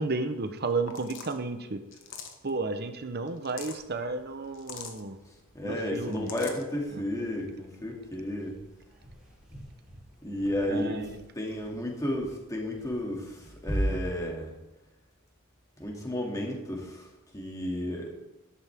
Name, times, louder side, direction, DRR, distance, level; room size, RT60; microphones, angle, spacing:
voice 1, 0.0-1.8 2.4-5.2 5.6-6.3 6.9-7.0 10.7-11.2, right 3 dB, 45° right, 8 dB, 0.9 m, -32 dB
sound 1, 0.6-0.7 0.9-1.4 1.9-2.5 3.3-3.8 4.5-5.0 6.0-6.6, left 6 dB, 60° left, 1.4 m, -42 dB
sound 2, 3.8-14.2, right 1 dB, 5° right, 3.1 m, -41 dB
voice 2, 5.5-8.6 10.2-11.0 11.3-14.5 15.8-17.1 17.3-18.1, left 1 dB, 15° left, -1 dB, 2.5 m, -32 dB
13.5 x 11.5 x 3.6 m, 1.0 s
head